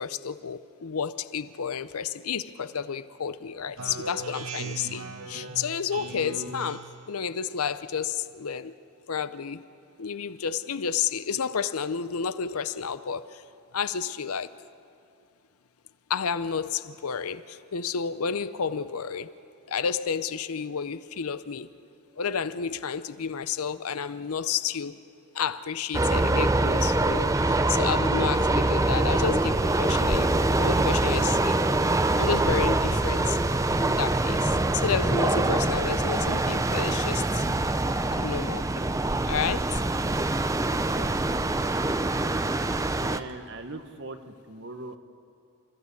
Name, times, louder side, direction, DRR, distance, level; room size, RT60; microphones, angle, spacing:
voice 1, 0.0-8.7 9.1-9.7 10.0-13.4 13.7-14.5 16.1-19.3 19.7-21.7 22.2-25.0 25.3-31.6 32.2-33.4 33.8-37.4 38.1-38.9 39.3-39.8, left 6 dB, 85° left, 14 dB, 0.7 m, -31 dB
Speech synthesizer, 3.8-7.1, right 3 dB, 85° right, 1.4 m, -38 dB
sound 1, 25.9-43.2, right 2 dB, 15° right, 0.5 m, -24 dB
voice 2, 40.6-41.9 42.2-42.4 42.9-45.0, right 2 dB, 55° right, 7 dB, 1.3 m, -41 dB
29.5 x 14.0 x 8.5 m, 2.6 s
head